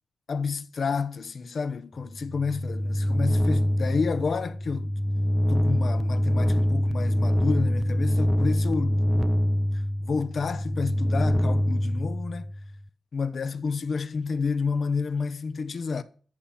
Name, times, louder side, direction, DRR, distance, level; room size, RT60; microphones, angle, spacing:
voice 1, 0.3-4.9 5.5-9.3 10.0-12.5 13.1-16.0, left 5 dB, 60° left, 1.2 m, -30 dB
sound 1, 2.1-12.7, equal, 5° right, 0.7 m, -25 dB
13.5 x 5.8 x 8.9 m
cardioid pair, 70°, 0 cm